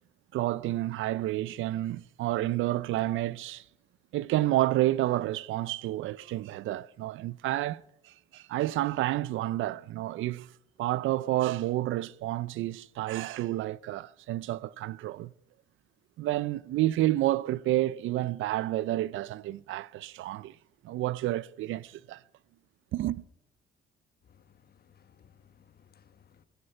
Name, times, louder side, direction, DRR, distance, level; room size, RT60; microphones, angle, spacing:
voice 1, 0.3-3.6 4.1-10.5 10.8-15.3 16.2-20.6 20.8-22.2 22.9-23.2, right 15 dB, 85° right, 0.5 m, -30 dB
voice 2, 24.3-26.4, left 8 dB, 50° left, 1.3 m, -61 dB
16.0 x 15.5 x 5.7 m
cardioid pair, 90°, 20 cm